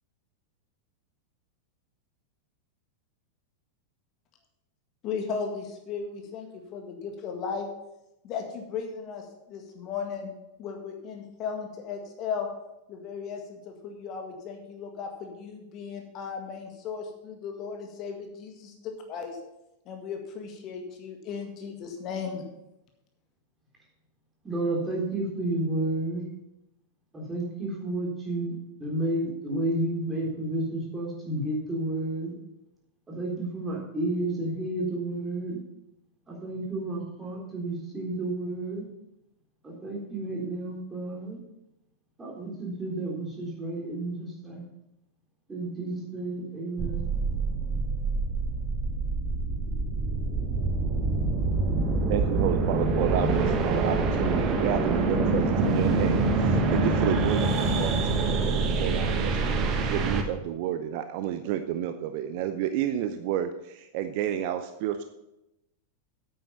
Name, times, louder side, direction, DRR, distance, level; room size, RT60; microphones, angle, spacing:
voice 1, 5.0-7.7 8.2-9.2 9.5-10.3 10.6-12.5 12.9-19.4 19.9-22.4, left 6 dB, 35° left, 3 dB, 1.8 m, -36 dB
voice 2, 24.4-26.2 27.1-32.3 33.1-35.6 36.3-38.9 39.6-41.4 42.2-44.6 45.5-47.1, right 2 dB, 15° right, -2 dB, 3.9 m, -31 dB
sound 1, 46.8-60.2, right 3 dB, 30° right, 1.4 m, -26 dB
voice 3, 52.1-65.0, right 11 dB, 45° right, 9 dB, 0.7 m, -31 dB
9.3 x 8.9 x 5.7 m, 0.88 s
figure-of-eight pair, 90°, 0 cm